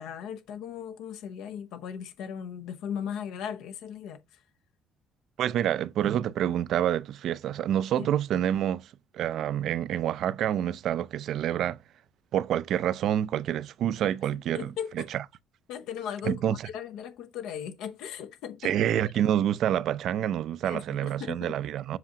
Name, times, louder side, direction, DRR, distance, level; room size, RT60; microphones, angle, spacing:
voice 1, 0.0-4.4 8.0-8.1 14.5-15.1 15.7-18.7 20.6-21.6, left 8 dB, 80° left, 0.8 m, -37 dB
voice 2, 5.4-11.8 12.3-14.7 16.3-16.5 18.6-22.0, right 10 dB, 60° right, 0.4 m, -27 dB
7.7 x 5.9 x 2.8 m
cardioid pair, 135°, 0 cm